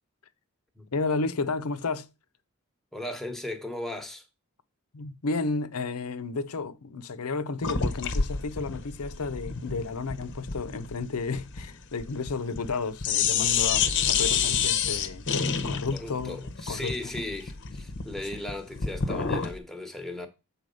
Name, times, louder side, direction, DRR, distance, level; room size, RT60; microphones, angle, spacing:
voice 1, 0.9-2.1 4.9-15.2 15.6-17.0, left 4 dB, 85° left, 0.7 m, -32 dB
voice 2, 2.9-4.2 15.9-20.3, left 1 dB, ahead, 1.1 m, -37 dB
sound 1, 7.6-12.8 13.0-19.6, left 6 dB, 55° left, 0.8 m, -29 dB
7.7 x 4.1 x 5.4 m
head